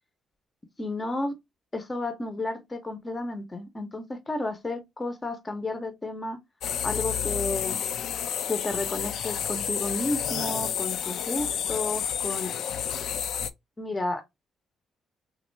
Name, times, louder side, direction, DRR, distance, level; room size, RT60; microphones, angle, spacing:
voice 1, 0.8-1.3 1.7-6.4 6.8-7.8 8.5-12.5 13.8-14.2, left 2 dB, 20° left, 0.7 m, -32 dB
sound 1, 6.6-13.5, left 8 dB, 70° left, 0.3 m, -30 dB
3.0 x 2.4 x 3.2 m
cardioid pair, 90°, 0 cm